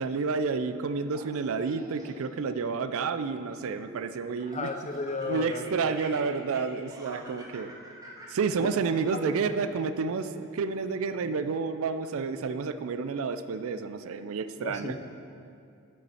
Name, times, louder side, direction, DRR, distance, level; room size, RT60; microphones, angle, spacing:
voice 1, 0.0-4.7 5.3-7.7 8.3-14.9, right 5 dB, 65° right, 11 dB, 0.4 m, -30 dB
Laughter, 1.1-2.4 3.0-4.1 4.5-9.6, right 1 dB, 15° right, 1.2 m, -48 dB
voice 2, 4.5-5.8 8.6-8.7 9.1-9.6 14.6-15.0, left 3 dB, 30° left, 5 dB, 0.5 m, -34 dB
7.2 x 6.7 x 5.6 m, 2.5 s
head